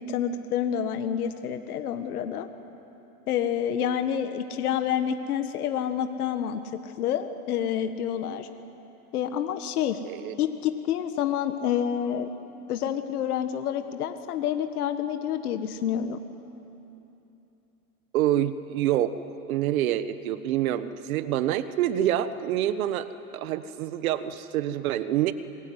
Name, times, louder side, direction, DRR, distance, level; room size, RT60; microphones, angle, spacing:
voice 1, 0.0-2.5 3.3-8.5 9.1-10.0 10.4-12.3 12.7-16.2, left 9 dB, 80° left, 8 dB, 1.8 m, -28 dB
voice 2, 18.1-19.1 19.5-23.1 23.3-25.3, right 12 dB, 70° right, 12 dB, 1.4 m, -26 dB
27.0 x 22.0 x 9.6 m, 2.9 s
supercardioid pair, 140°, 44 cm